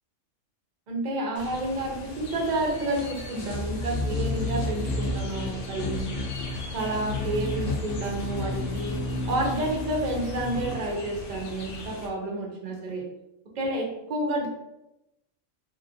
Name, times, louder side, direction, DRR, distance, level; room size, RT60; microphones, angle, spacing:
voice 1, 0.9-6.1 6.7-9.0 9.3-13.0 13.6-14.5, right 1 dB, 45° right, 0 dB, 0.6 m, -30 dB
sound 1, 1.4-12.1, left 2 dB, 60° left, 0.6 m, -32 dB
2.8 x 2.6 x 2.6 m, 0.90 s
omnidirectional pair, 1.3 m